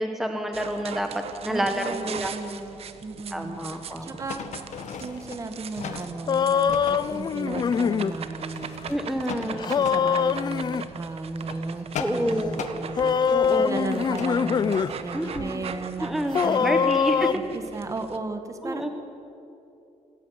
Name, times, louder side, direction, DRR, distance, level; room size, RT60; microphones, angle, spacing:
voice 1, 0.0-2.3 3.3-4.1 8.9-9.7 11.9-12.6 13.3-13.9 15.1-17.4 18.6-18.9, equal, ahead, 4 dB, 1.1 m, -29 dB
sound 1, 0.5-18.2, right 7 dB, 50° right, 1.3 m, -40 dB
voice 2, 1.5-3.6 4.0-4.4 5.0-8.9 9.4-13.1 13.6-14.8 15.0-17.0 17.3-18.9, right 3 dB, 25° right, 7 dB, 1.7 m, -35 dB
sound 2, 4.3-6.2 6.7-8.0 8.4-10.1 10.6-10.9 11.3-12.8 14.1-15.0 15.3-15.4, left 7 dB, 65° left, 1.9 m, -38 dB
sound 3, 6.3-8.1 9.6-10.9 13.0-14.9 15.3-15.4 16.3-17.4, left 7 dB, 35° left, 0.5 m, -23 dB
26.0 x 14.5 x 9.9 m, 2.8 s
wide cardioid pair, 175°, 13 cm